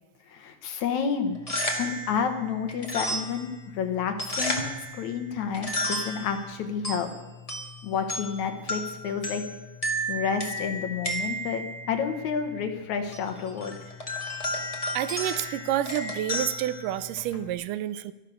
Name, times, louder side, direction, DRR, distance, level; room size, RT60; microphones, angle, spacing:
voice 1, 0.3-1.4 1.8-4.6 4.9-7.1 7.8-9.4 10.1-13.8, left 6 dB, 70° left, 7 dB, 2.2 m, -30 dB
sound 1, 1.3-17.5, equal, 25° left, 0.7 m, -34 dB
voice 2, 14.9-18.1, right 12 dB, 80° right, 14 dB, 2.1 m, -29 dB
12.5 x 11.5 x 6.5 m, 1.2 s
omnidirectional pair, 3.9 m